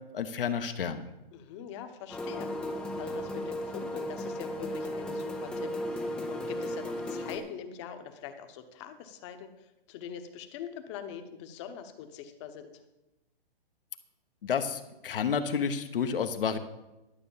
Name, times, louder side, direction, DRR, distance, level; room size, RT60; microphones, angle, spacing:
voice 1, 0.1-1.0 14.4-16.6, left 6 dB, 65° left, 8 dB, 1.3 m, -30 dB
voice 2, 1.3-12.8, left 8 dB, 30° left, 8 dB, 1.1 m, -43 dB
sound 1, 2.1-7.4, left 1 dB, 5° left, 0.5 m, -35 dB
12.0 x 6.5 x 7.2 m, 0.99 s
hypercardioid pair, 150°, 29 cm